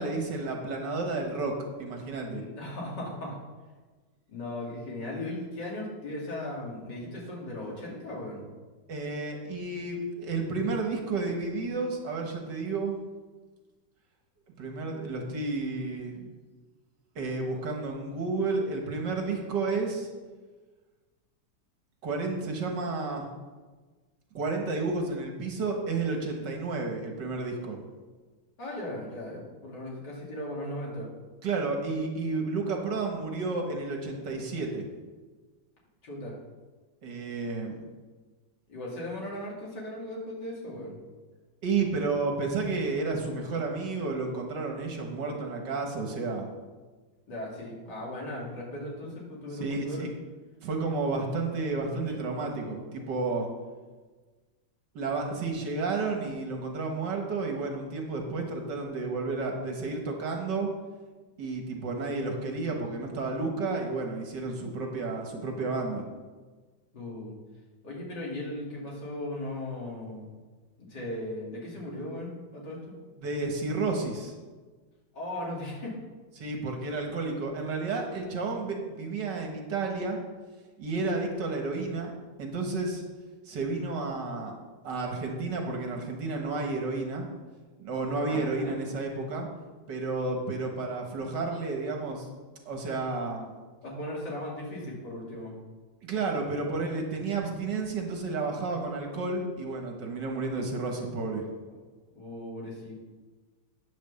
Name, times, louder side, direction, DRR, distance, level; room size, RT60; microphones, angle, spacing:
voice 1, 0.0-2.4 8.9-13.0 14.6-16.3 17.2-20.1 22.0-23.3 24.3-27.8 31.4-34.9 37.0-37.8 41.6-46.5 49.5-50.1 50.6-53.5 55.0-60.7 61.4-66.0 73.2-74.3 76.4-80.2 80.8-82.1 82.4-83.0 83.5-84.5 84.8-87.3 87.8-89.5 89.9-92.3 92.7-93.5 96.0-101.5, right 3 dB, 70° right, 2 dB, 2.0 m, -31 dB
voice 2, 2.4-3.4 4.3-8.4 28.6-31.1 36.0-36.3 38.7-41.0 47.3-50.1 52.1-52.2 66.9-67.3 67.8-70.3 70.8-72.8 75.1-75.9 88.3-88.7 93.8-95.5 102.1-102.9, left 1 dB, 70° left, -4 dB, 3.2 m, -37 dB
9.1 x 6.0 x 6.9 m, 1.3 s
omnidirectional pair, 1.9 m